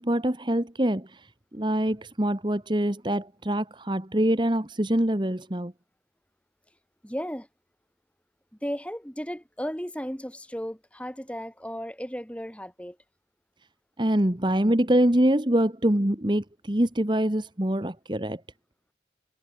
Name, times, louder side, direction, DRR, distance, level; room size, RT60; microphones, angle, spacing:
voice 1, 0.0-5.7 14.0-18.4, right 1 dB, 25° right, 1.4 m, -25 dB
voice 2, 7.0-7.5 8.6-13.0, equal, 5° left, 5.3 m, -35 dB
head